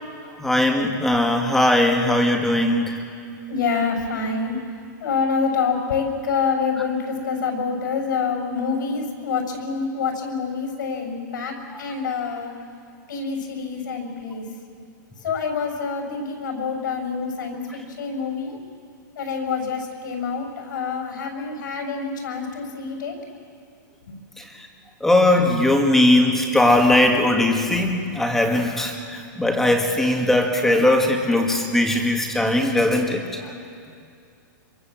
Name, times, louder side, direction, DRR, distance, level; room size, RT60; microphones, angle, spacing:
voice 1, 0.4-3.0 24.4-24.5 25.0-33.2, left 1 dB, 5° left, 2 dB, 1.8 m, -19 dB
voice 2, 3.5-4.6 5.0-12.5 13.1-14.4 15.2-18.5 19.1-23.1 24.1-24.2, left 5 dB, 80° left, 3 dB, 6.6 m, -26 dB
26.0 x 23.5 x 7.6 m, 2.4 s
supercardioid pair, 165°, 10 cm